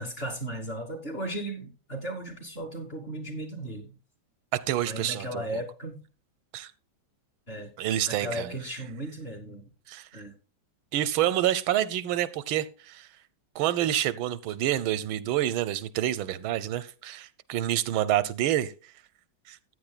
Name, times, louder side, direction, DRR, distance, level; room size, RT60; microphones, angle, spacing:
voice 1, 0.0-3.9 4.8-6.0 7.5-7.7 8.1-9.7 10.1-10.3, right 1 dB, 30° left, 2.9 m, -36 dB
voice 2, 4.7-5.4 6.5-6.7 7.8-8.5 9.9-10.1 10.9-13.1 13.5-18.7 19.5-19.6, right 12 dB, 90° right, 1.5 m, -28 dB
14.5 x 9.3 x 2.2 m
omnidirectional pair, 2.2 m